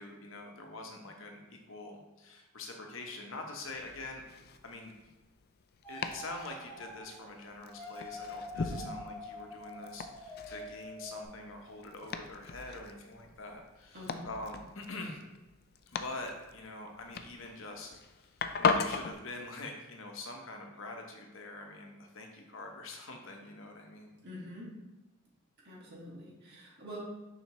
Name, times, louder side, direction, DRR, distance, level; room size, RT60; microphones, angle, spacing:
voice 1, 0.0-4.2 4.6-5.1 5.9-15.2 15.9-18.3 18.6-24.1, left 2 dB, 65° left, 2 dB, 1.1 m, -45 dB
Domestic sounds home sounds, 3.6-19.1, left 5 dB, 45° left, 0.4 m, -39 dB
sound 1, 5.8-11.2, left 1 dB, 10° left, 1.9 m, -46 dB
voice 2, 8.5-8.9 13.9-14.3 24.2-24.7 25.6-27.0, equal, 50° right, -4 dB, 2.1 m, -46 dB
7.0 x 5.8 x 3.1 m, 1.1 s
head